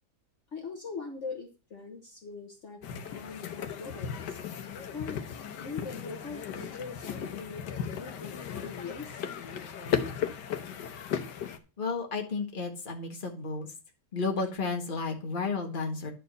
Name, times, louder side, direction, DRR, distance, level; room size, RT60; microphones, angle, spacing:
voice 1, 0.5-4.4 4.9-5.2 5.6-9.2, left 4 dB, 45° left, 1 dB, 1.5 m, -42 dB
sound 1, 2.8-11.6, left 8 dB, 85° left, 1.6 m, -36 dB
voice 2, 11.8-13.7 14.1-16.1, left 4 dB, 30° left, 3 dB, 1.7 m, -32 dB
11.0 x 4.4 x 6.6 m, 0.33 s
omnidirectional pair, 1.8 m